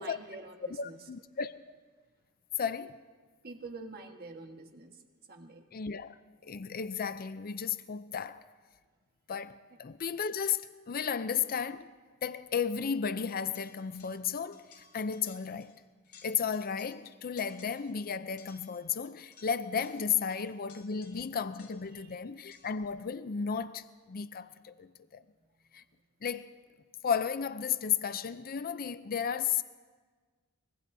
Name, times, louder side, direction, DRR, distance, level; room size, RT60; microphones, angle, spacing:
voice 1, 0.0-1.1 3.4-5.0 5.3-5.7 20.2-20.5 20.9-21.1 21.9-22.2, right 3 dB, 45° right, 1.5 m, -47 dB
voice 2, 0.8-1.8 2.6-3.0 5.7-6.1 6.4-8.4 9.3-11.9 12.2-14.7 14.9-15.8 16.2-25.2 25.7-25.8 26.2-26.6 27.0-29.6, left 7 dB, 40° left, 0.5 m, -34 dB
sound 1, 13.5-14.3 14.5-15.8 16.0-17.1 17.4-18.0 18.4-22.0 22.5-22.9, left 6 dB, 85° left, 2.6 m, -59 dB
24.0 x 22.0 x 2.7 m
head